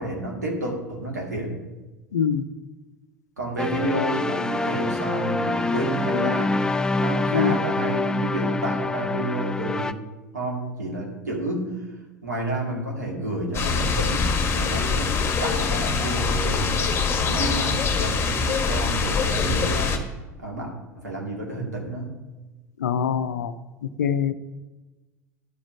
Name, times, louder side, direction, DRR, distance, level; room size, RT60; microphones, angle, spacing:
voice 1, 0.0-1.6 3.4-6.6 6.9-10.0 10.3-11.9 12.2-20.0 20.4-20.7 21.0-22.1, right 1 dB, 85° right, -1 dB, 2.4 m, -30 dB
voice 2, 2.1-2.4 7.3-7.6 22.8-23.5 24.0-24.3, left 7 dB, 75° left, 12 dB, 0.6 m, -23 dB
sound 1, 3.6-9.9, left 2 dB, 10° left, 0.5 m, -25 dB
sound 2, 13.5-20.0, left 5 dB, 25° left, 1.5 m, -24 dB
11.5 x 5.0 x 7.0 m, 1.1 s
figure-of-eight pair, 75°, 9 cm